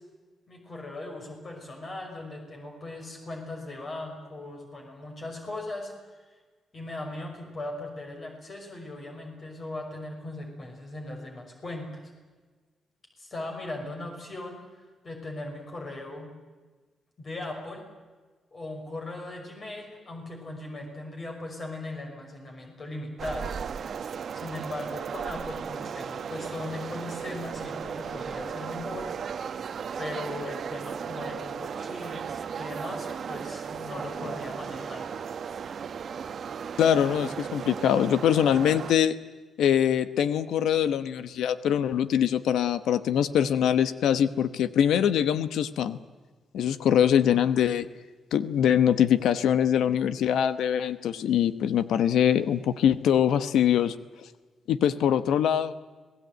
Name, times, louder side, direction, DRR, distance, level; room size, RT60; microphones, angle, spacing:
voice 1, 0.5-5.9 6.7-12.1 13.2-16.3 17.2-17.9 18.5-23.5 24.3-29.1 29.5-29.6 30.0-35.0, left 2 dB, 40° left, 2 dB, 5.8 m, -38 dB
sound 1, 23.2-38.9, right 7 dB, 55° right, 1.0 m, -36 dB
voice 2, 36.8-39.1 39.6-46.0 46.5-47.9 48.3-53.9 54.7-55.7, left 9 dB, 90° left, 13 dB, 1.0 m, -23 dB
26.0 x 18.5 x 9.2 m, 1.3 s
cardioid pair, 100°, 0 cm